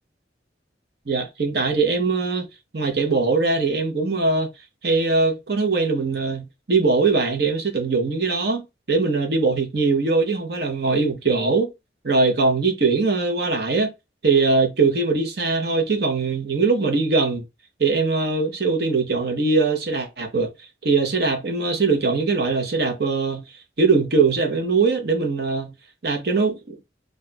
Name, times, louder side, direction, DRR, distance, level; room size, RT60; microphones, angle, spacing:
voice 1, 1.1-2.5 2.7-4.5 4.8-8.6 8.9-11.7 12.0-13.9 14.2-17.4 17.8-20.5 20.8-23.4 23.8-25.7 26.0-26.8, right 4 dB, 60° right, 0.9 m, -21 dB
4.2 x 2.5 x 2.2 m
head